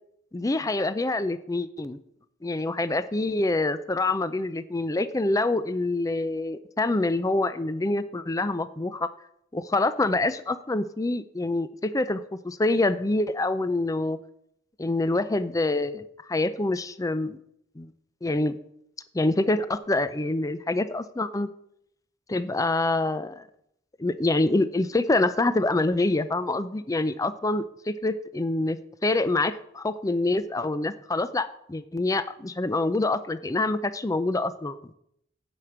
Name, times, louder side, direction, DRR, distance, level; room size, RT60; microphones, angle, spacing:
voice 1, 0.3-2.0 2.4-9.1 9.5-14.2 14.8-17.4 17.8-17.9 18.2-18.6 19.1-21.5 22.3-23.4 24.0-34.8, left 2 dB, 15° left, 13 dB, 0.5 m, -26 dB
10.5 x 5.0 x 7.3 m, 0.74 s
head